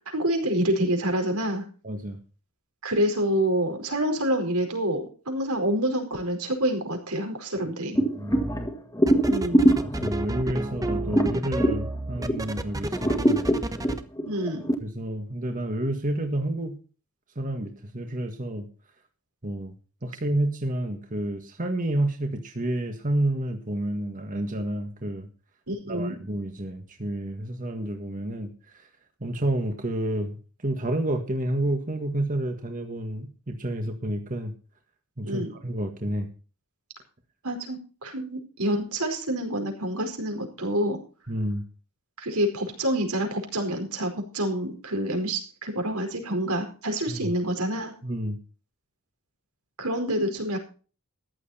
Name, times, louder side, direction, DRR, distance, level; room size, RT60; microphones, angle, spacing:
voice 1, 0.1-1.6 2.8-8.0 9.3-9.8 14.2-14.7 25.7-26.1 35.2-35.5 37.4-41.0 42.2-47.9 49.8-50.6, right 1 dB, 90° right, 4 dB, 4.8 m, -27 dB
voice 2, 1.8-2.2 8.2-8.5 9.8-13.4 14.8-16.8 17.4-18.7 19.4-19.7 20.0-25.3 25.9-28.5 28.7-28.8 29.2-30.4 30.6-34.5 35.2-36.3 41.3-41.6 47.1-47.3 48.0-48.4, right 1 dB, 35° right, 4 dB, 1.7 m, -29 dB
sound 1, 8.0-12.6 12.9-14.8, right 1 dB, 15° left, 2.0 m, -24 dB
sound 2, 8.3-8.7 9.1-14.0, right 1 dB, 15° right, 1.0 m, -31 dB
14.5 x 11.0 x 4.3 m, 0.37 s
head